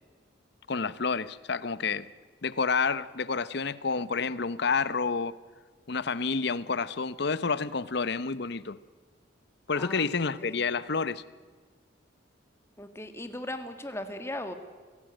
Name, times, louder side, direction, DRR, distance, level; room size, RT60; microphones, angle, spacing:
voice 1, 0.7-2.1 2.4-5.3 5.9-8.8 9.7-11.2, left 4 dB, 60° left, 0.8 m, -29 dB
voice 2, 9.8-10.1 10.4-10.7 12.8-14.5, left 1 dB, 15° left, 1.8 m, -38 dB
27.5 x 17.0 x 9.1 m
head